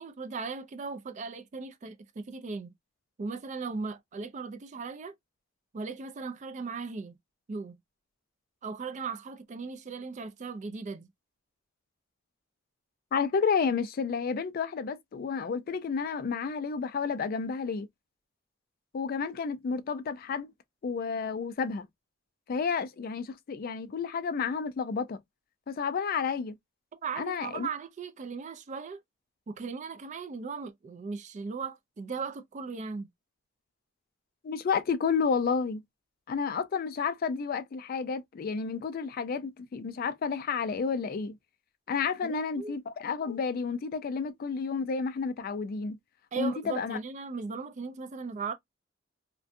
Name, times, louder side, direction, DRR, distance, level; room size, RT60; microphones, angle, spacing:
voice 1, 0.0-2.7 3.2-5.1 5.7-7.2 7.5-7.8 8.6-11.1 27.0-29.0 29.5-33.1 42.2-42.8 46.3-48.5, right 4 dB, 35° right, 0.3 m, -37 dB
voice 2, 13.1-17.9 18.9-20.5 20.8-21.9 22.5-25.2 25.7-26.5 27.2-27.7 34.4-35.8 36.3-41.4 41.9-46.0 46.4-47.0, left 5 dB, 45° left, 0.3 m, -31 dB
2.5 x 2.2 x 2.5 m
head